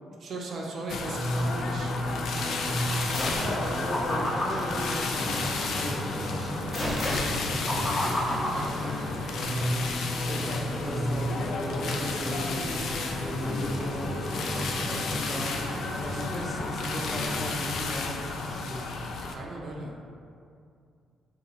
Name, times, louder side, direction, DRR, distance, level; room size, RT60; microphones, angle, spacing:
voice 1, 0.2-1.9 8.5-8.8 19.3-19.9, right 2 dB, 55° right, -1 dB, 0.5 m, -37 dB
sound 1, 0.9-19.3, left 3 dB, 70° left, 0.3 m, -33 dB
Musical instrument, 1.0-17.7, equal, 5° right, 0.9 m, -34 dB
sound 2, 3.1-3.6 3.9-5.7 6.7-9.3, equal, 40° left, 0.9 m, -32 dB
voice 2, 3.4-8.5 9.4-15.6 16.0-18.8, left 1 dB, 15° left, -2 dB, 0.5 m, -36 dB
4.1 x 2.2 x 2.8 m, 2.3 s
cardioid pair, 90°, 0 cm